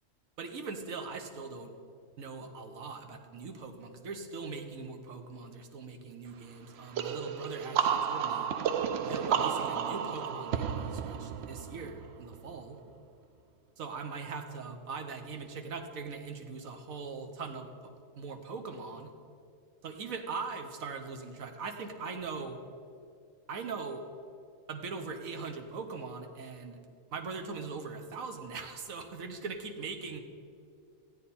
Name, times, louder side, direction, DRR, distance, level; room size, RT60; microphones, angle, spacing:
voice 1, 0.4-1.7 2.2-8.5 9.0-12.8 13.8-19.1 19.8-22.6 23.5-24.0 24.7-26.8 27.1-30.2, right 4 dB, 85° right, 5 dB, 1.4 m, -41 dB
sound 1, 7.0-12.5, right 8 dB, 60° right, 0.8 m, -32 dB
15.0 x 8.9 x 4.2 m, 2.5 s
omnidirectional pair, 1.4 m